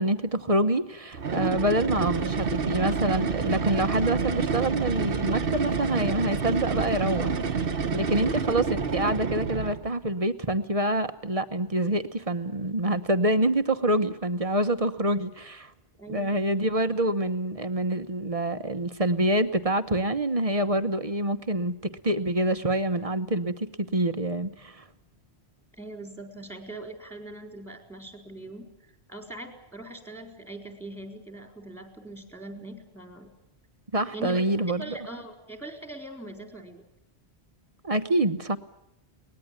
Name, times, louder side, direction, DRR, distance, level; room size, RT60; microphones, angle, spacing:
voice 1, 0.0-7.4 7.9-15.7 16.1-24.8 33.9-34.8 37.8-38.6, right 1 dB, 35° right, 10 dB, 1.1 m, -26 dB
sound 1, 1.1-9.9, right 5 dB, 60° right, 1.2 m, -28 dB
voice 2, 8.1-8.4 16.0-16.4 25.8-28.7 29.1-33.3 34.1-34.4 34.8-36.8, right 1 dB, ahead, 4 dB, 4.1 m, -41 dB
23.5 x 19.5 x 8.9 m, 0.86 s
omnidirectional pair, 1.1 m